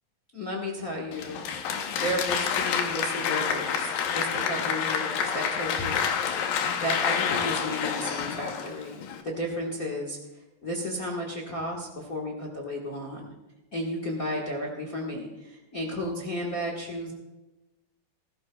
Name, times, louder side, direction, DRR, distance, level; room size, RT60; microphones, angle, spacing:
voice 1, 0.3-1.4 1.9-6.5 6.8-9.0 9.2-10.2 10.6-13.3 13.7-17.1, equal, 50° left, -1 dB, 1.0 m, -33 dB
Applause, 1.1-9.2, left 7 dB, 90° left, 2.7 m, -28 dB
18.0 x 15.5 x 2.3 m, 1.0 s
omnidirectional pair, 4.0 m